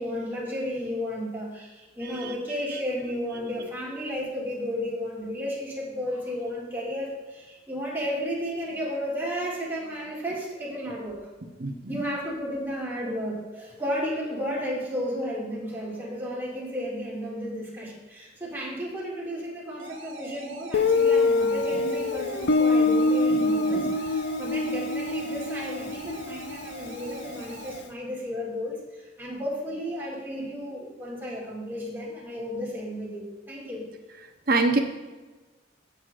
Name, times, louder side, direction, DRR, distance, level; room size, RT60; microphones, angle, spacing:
voice 1, 0.0-11.2 11.9-33.8, equal, 10° right, -6 dB, 2.3 m, -33 dB
voice 2, 2.0-2.3 2.7-2.8 3.4-3.5 11.6-12.0 21.7-21.8 23.3-24.0 34.5-34.8, right 3 dB, 50° right, 4 dB, 0.9 m, -27 dB
sound 1, 19.8-27.8, right 2 dB, 75° right, 1.3 m, -43 dB
Guitar, 20.7-27.4, left 3 dB, 60° left, 0.5 m, -25 dB
16.5 x 6.5 x 2.5 m, 1.2 s
head